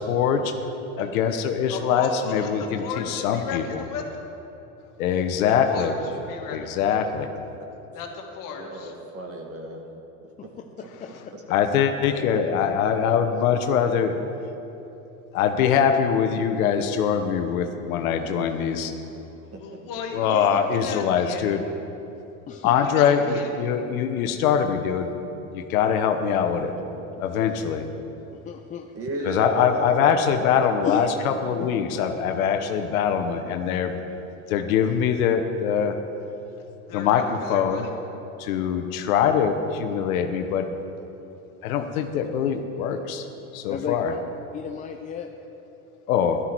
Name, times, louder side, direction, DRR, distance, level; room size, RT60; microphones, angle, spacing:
voice 1, 0.1-0.5 1.0-3.6 5.0-5.9 6.5-7.3 11.5-14.2 15.3-18.9 20.1-21.6 22.6-25.1 25.5-26.7 27.2-27.9 29.2-34.0 34.5-35.9 36.9-37.9 38.4-40.7 41.6-43.3 43.5-44.1 46.1-46.4, left 7 dB, 70° left, 6 dB, 1.1 m, -23 dB
voice 2, 1.7-4.0 5.5-7.0 7.9-8.9 12.1-12.2 19.2-19.3 19.6-21.5 22.7-23.6 36.9-37.9, left 5 dB, 45° left, 2 dB, 2.0 m, -36 dB
voice 3, 5.6-6.1 8.6-9.8 10.4-10.5 11.3-11.4 19.5-19.8 26.6-27.3 28.9-30.7 31.0-31.6, right 1 dB, 30° right, 2 dB, 2.0 m, -35 dB
voice 4, 28.4-28.9 30.8-31.1 31.6-31.7 43.7-44.2 44.5-45.3, left 8 dB, 20° left, 4 dB, 0.4 m, -32 dB
13.0 x 12.0 x 4.6 m, 3.0 s
hypercardioid pair, 100°, 44 cm